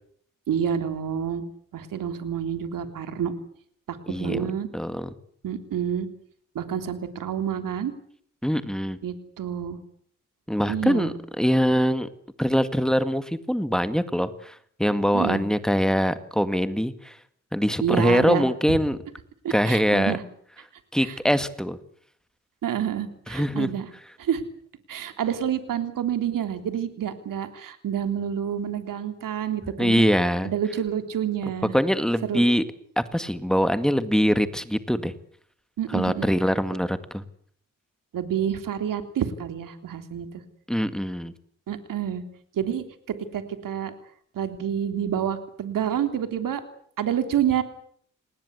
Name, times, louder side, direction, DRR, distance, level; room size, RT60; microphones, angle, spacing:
voice 1, 0.5-1.4 1.7-3.3 3.9-4.7 5.4-6.1 6.6-7.9 9.0-9.8 10.7-11.1 15.1-15.4 17.8-18.8 19.4-20.2 21.0-21.2 22.6-23.9 24.2-24.4 24.9-30.1 30.4-31.7 32.3-32.5 35.8-36.3 38.1-40.3 41.7-42.2 42.6-43.9 44.4-46.6 47.0-47.6, right 9 dB, 85° right, 8 dB, 3.4 m, -28 dB
voice 2, 4.1-4.5 4.7-5.1 8.4-9.0 10.5-12.1 12.4-17.2 17.5-19.0 19.5-20.2 20.9-21.8 23.3-23.7 29.8-30.5 31.7-32.6 33.0-35.1 35.9-37.2 40.7-41.3, equal, ahead, 11 dB, 2.0 m, -23 dB
28.5 x 20.0 x 8.2 m, 0.62 s
cardioid pair, 105°, 32 cm